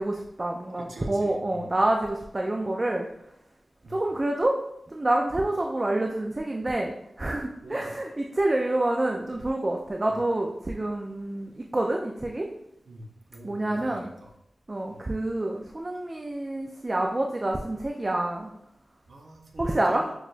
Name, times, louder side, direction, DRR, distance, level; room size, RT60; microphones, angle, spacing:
voice 1, 0.0-3.1 3.9-4.6 4.9-12.5 13.4-14.1 14.7-18.5 19.6-20.0, right 1 dB, 30° right, 1 dB, 0.3 m, -27 dB
voice 2, 0.8-1.7 3.8-4.0 7.6-7.9 10.1-10.2 12.8-14.3 14.9-15.1 19.1-20.1, right 1 dB, 65° right, 0 dB, 0.7 m, -45 dB
6.0 x 2.2 x 2.5 m, 0.79 s
wide cardioid pair, 95°, 0 cm